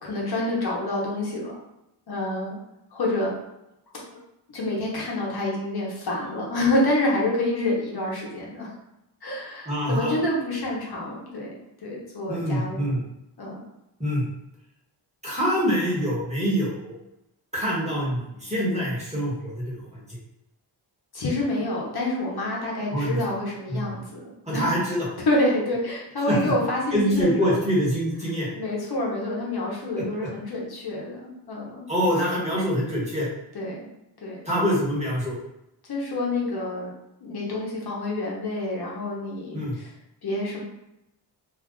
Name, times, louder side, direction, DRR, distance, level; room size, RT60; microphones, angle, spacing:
voice 1, 0.0-1.5 2.1-2.6 2.9-3.3 4.5-8.7 9.2-11.5 11.8-13.0 13.4-13.6 21.1-24.6 25.3-27.5 28.5-31.8 33.5-33.9 34.2-34.4 35.9-36.9 37.2-39.9 40.2-40.6, left 1 dB, 60° left, -3 dB, 0.9 m, -27 dB
voice 2, 9.7-10.2 12.3-13.0 14.0-14.3 15.2-16.9 17.5-20.0 22.9-23.2 23.7-23.9 24.5-25.1 26.3-26.4 26.9-28.5 29.9-30.0 31.9-33.3 34.4-35.4 39.5-39.7, equal, 15° right, -7 dB, 1.3 m, -25 dB
2.6 x 2.4 x 3.7 m, 0.88 s
wide cardioid pair, 115°, 43 cm